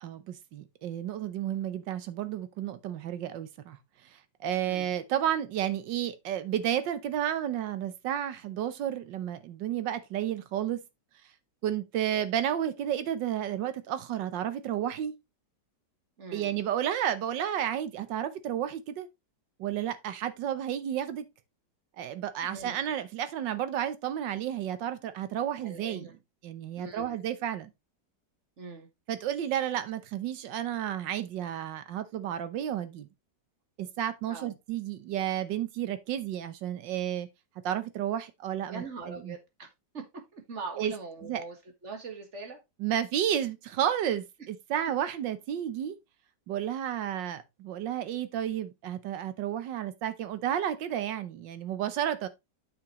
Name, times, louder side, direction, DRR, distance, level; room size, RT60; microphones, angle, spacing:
voice 1, 0.0-3.8 4.1-10.8 11.6-15.2 16.3-19.1 19.6-21.3 22.0-26.1 26.4-27.7 29.1-33.1 33.8-37.3 37.6-39.4 40.8-40.9 41.2-41.4 42.8-46.0 46.5-52.3, right 10 dB, 85° right, 1.6 m, -32 dB
voice 2, 16.2-16.6 22.4-22.8 25.6-26.1 26.8-27.2 28.6-28.9 34.3-34.6 38.7-39.7 39.9-40.1 40.3-41.6 41.8-42.6, right 4 dB, 40° right, 1.8 m, -41 dB
8.7 x 6.1 x 3.0 m
omnidirectional pair, 1.9 m